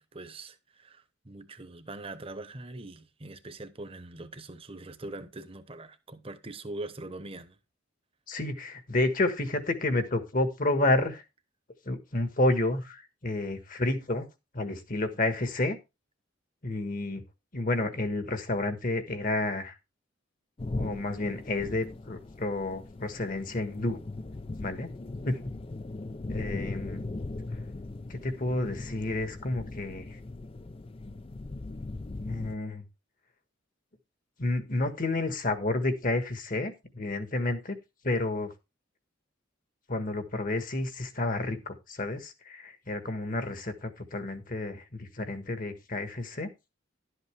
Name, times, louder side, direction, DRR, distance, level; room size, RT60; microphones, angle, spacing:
voice 1, 0.0-7.6, right 2 dB, 30° right, 1.0 m, -42 dB
voice 2, 8.3-11.2 11.8-14.3 14.5-15.8 16.6-17.2 17.5-19.7 20.8-24.0 24.6-24.9 25.2-25.4 26.3-27.1 28.1-30.1 31.0-31.2 32.2-32.8 34.4-37.8 38.0-38.5 39.9-46.5, left 2 dB, 45° left, 1.5 m, -30 dB
sound 1, 20.6-32.6, left 2 dB, 30° left, 0.4 m, -39 dB
11.5 x 8.1 x 3.4 m
head